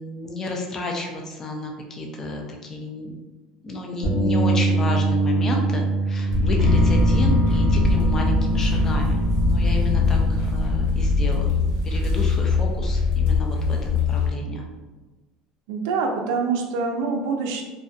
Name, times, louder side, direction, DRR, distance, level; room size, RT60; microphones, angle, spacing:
voice 1, 0.0-3.1 3.6-11.6 11.8-14.6, left 2 dB, 20° left, 1 dB, 0.3 m, -32 dB
Bass guitar, 4.0-10.3, right 3 dB, 45° left, 0.8 m, -25 dB
sound 1, 6.3-14.3, left 3 dB, 85° left, 0.9 m, -22 dB
sound 2, 6.6-12.6, left 1 dB, 10° right, 0.8 m, -27 dB
voice 2, 15.7-17.6, right 4 dB, 85° right, 3 dB, 0.4 m, -25 dB
2.5 x 2.2 x 2.4 m, 1.2 s
cardioid pair, 170°, 2 cm